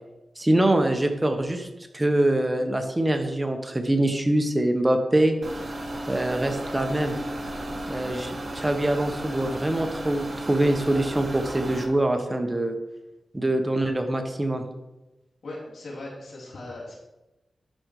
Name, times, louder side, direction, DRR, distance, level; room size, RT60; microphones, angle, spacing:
voice 1, 0.4-1.7 1.9-5.4 6.1-7.2 7.9-12.8 13.3-14.6, right 1 dB, 20° right, 5 dB, 1.2 m, -24 dB
sound 1, 5.4-11.8, right 1 dB, 40° right, 1.5 m, -34 dB
voice 2, 15.4-17.0, left 2 dB, 75° left, -5 dB, 3.5 m, -38 dB
12.0 x 5.2 x 4.9 m, 1.0 s
wide cardioid pair, 85°, 0 cm